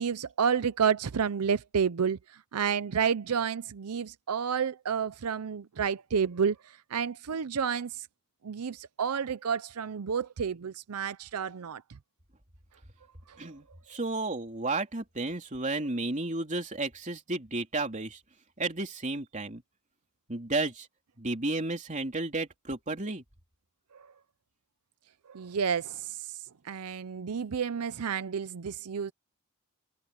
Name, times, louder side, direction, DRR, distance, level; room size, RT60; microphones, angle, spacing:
voice 1, 0.0-8.1 8.4-11.8 13.3-13.4 23.9-24.1 25.3-29.1, right 7 dB, 85° right, 0.6 m, -30 dB
voice 2, 13.4-18.2 18.6-19.6 20.3-20.9 21.2-23.2, right 2 dB, 35° right, 3.4 m, -32 dB
head